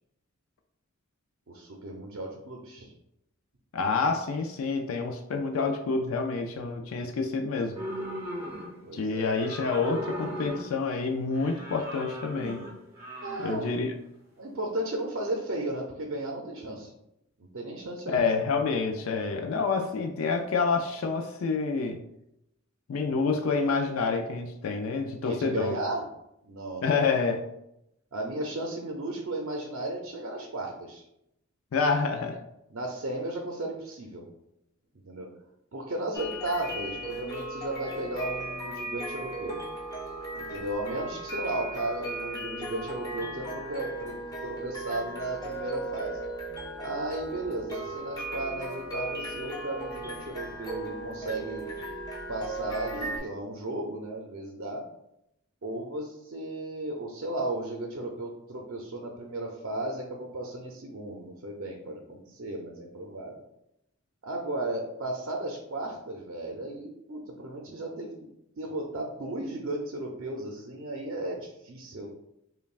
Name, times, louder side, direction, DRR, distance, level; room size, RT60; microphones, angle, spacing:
voice 1, 1.5-2.9 8.9-9.3 13.2-13.7 14.4-16.9 17.4-18.3 25.2-26.1 26.4-26.9 28.1-31.0 32.7-34.3 35.0-35.3 35.7-39.6 40.3-44.2 44.4-46.2 46.8-51.7 52.3-54.8 55.6-63.4 64.2-68.3 68.6-72.1, right 1 dB, 65° right, 0 dB, 0.5 m, -35 dB
voice 2, 3.7-7.8 8.9-12.6 13.4-13.9 18.1-22.0 22.9-25.8 26.8-27.5 31.7-32.4, left 4 dB, 75° left, 4 dB, 0.4 m, -28 dB
sound 1, 7.7-8.9 9.2-10.9 11.3-13.7, equal, 15° right, 1.0 m, -38 dB
sound 2, 36.1-53.2, right 2 dB, 15° left, 0.6 m, -37 dB
5.3 x 2.2 x 2.4 m, 0.82 s
head